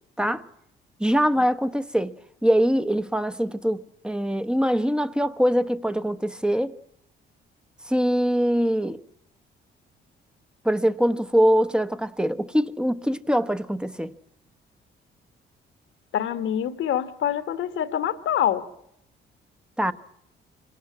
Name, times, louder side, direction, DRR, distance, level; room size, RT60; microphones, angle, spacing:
voice 1, 1.0-2.1 2.4-6.8 7.9-9.0 10.6-14.1 19.8-19.9, equal, 5° right, 0.9 m, -23 dB
voice 2, 16.1-18.7, left 10 dB, 75° left, 1.4 m, -25 dB
25.5 x 17.5 x 8.6 m
cardioid pair, 90°, 20 cm